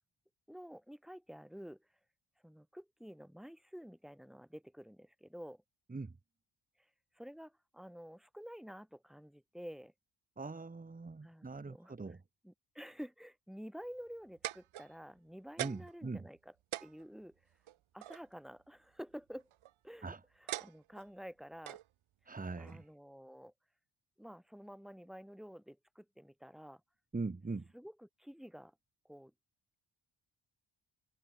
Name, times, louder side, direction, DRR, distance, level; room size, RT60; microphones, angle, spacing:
voice 1, 0.5-1.9 2.4-5.6 6.8-6.9 7.1-9.9 11.2-11.9 12.4-16.4 16.8-17.4 17.9-19.5 19.8-21.8 22.6-23.5 24.2-26.8 27.7-28.7 29.0-29.3, equal, ahead, 3.3 m, -50 dB
voice 2, 10.4-12.2 15.6-16.2 20.0-20.2 22.2-22.9 27.1-27.7, right 3 dB, 15° right, 1.4 m, -41 dB
sound 1, 14.1-15.2 15.6-16.0 16.4-16.5 16.7-18.2 19.3-19.7 20.5-21.1 21.7-21.9 22.7-22.8, right 13 dB, 75° right, 0.9 m, -42 dB
wide cardioid pair, 160°, 49 cm